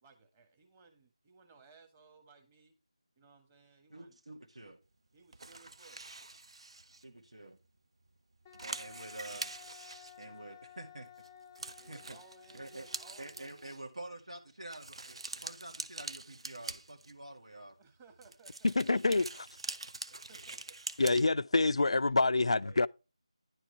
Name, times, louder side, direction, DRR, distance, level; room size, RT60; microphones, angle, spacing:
voice 1, 0.0-2.7 3.2-4.2 5.1-6.0 11.8-13.5 17.8-18.7 20.1-20.8 22.4-22.9, right 4 dB, 15° right, 1.4 m, -60 dB
voice 2, 3.9-4.8 6.9-7.6 8.6-9.5 10.2-11.1 11.8-12.2 12.5-12.9 13.2-17.8, right 2 dB, 75° right, 2.2 m, -47 dB
sound 1, 5.3-7.0 7.6-7.7 8.0-8.1 8.4-10.7 11.2-11.3 11.5-13.8 14.7-17.3 18.1-21.2, right 3 dB, 60° right, 0.7 m, -45 dB
Wind instrument woodwind instrument, 8.5-13.9, left 10 dB, 15° left, 0.6 m, -56 dB
voice 3, 18.6-19.5 21.0-22.9, left 3 dB, 65° left, 0.4 m, -27 dB
10.5 x 4.7 x 4.5 m
figure-of-eight pair, 165°, 3 cm